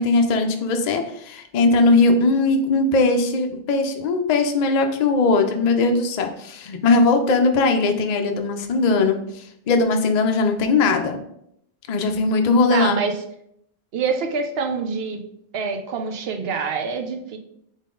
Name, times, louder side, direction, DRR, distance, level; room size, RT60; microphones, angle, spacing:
voice 1, 0.0-11.2 11.9-13.0, left 3 dB, 55° left, 5 dB, 0.5 m, -19 dB
voice 2, 12.7-13.1 13.9-15.2 15.5-17.4, right 5 dB, 75° right, 5 dB, 0.8 m, -26 dB
3.7 x 3.5 x 3.7 m, 0.74 s
omnidirectional pair, 1.1 m